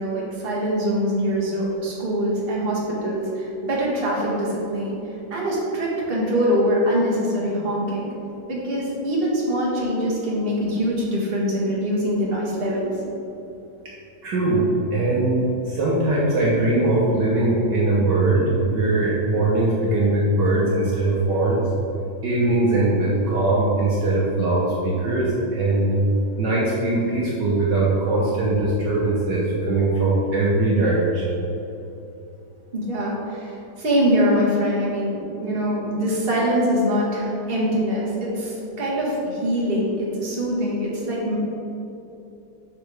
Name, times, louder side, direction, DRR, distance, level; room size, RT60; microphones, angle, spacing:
voice 1, 0.0-5.0 5.3-8.1 8.5-12.9 32.7-41.4, equal, 30° right, -5 dB, 1.6 m, -23 dB
voice 2, 14.2-21.6 22.2-25.9 26.4-31.3, right 2 dB, 60° right, -5 dB, 1.6 m, -21 dB
8.2 x 6.1 x 3.4 m, 2.9 s
omnidirectional pair, 2.3 m